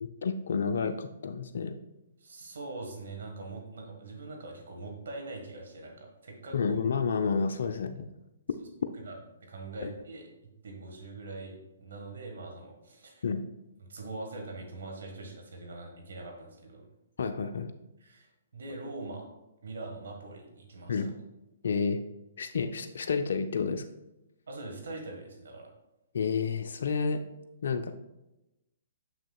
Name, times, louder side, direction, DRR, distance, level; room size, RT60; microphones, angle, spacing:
voice 1, 0.0-1.7 6.5-8.1 9.8-9.9 13.2-13.4 17.2-17.7 20.9-21.1 21.6-22.0 22.4-23.8 26.1-27.2 27.6-27.9, left 5 dB, 65° left, 7 dB, 0.4 m, -30 dB
voice 2, 2.2-6.6 7.6-7.7 9.0-9.1 9.4-10.2 10.6-13.3 13.9-16.9 18.0-19.3 19.6-21.1 24.5-25.7, right 2 dB, 70° right, 1 dB, 1.5 m, -42 dB
7.0 x 6.2 x 2.3 m, 0.94 s
hypercardioid pair, 130°, 0 cm